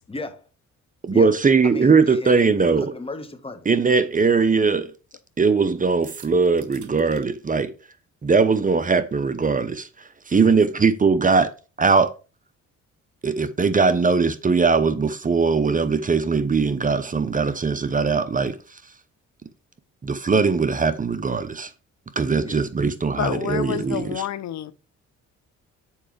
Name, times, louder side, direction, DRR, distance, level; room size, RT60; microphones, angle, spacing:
voice 1, 0.1-0.4 1.1-1.3 1.6-3.7 10.3-10.6 22.4-22.6, left 2 dB, 20° left, 1.4 m, -35 dB
voice 2, 1.0-2.9 3.7-4.9 5.4-7.7 8.2-9.9 10.3-11.5 11.8-12.1 13.2-18.6 20.0-21.7 22.2-24.2, right 4 dB, 25° right, 0.8 m, -20 dB
sound 1, 6.0-7.3, right 9 dB, 75° right, 1.6 m, -44 dB
voice 3, 23.2-24.7, left 11 dB, 65° left, 0.7 m, -28 dB
7.3 x 5.0 x 5.0 m
cardioid pair, 90°, 30 cm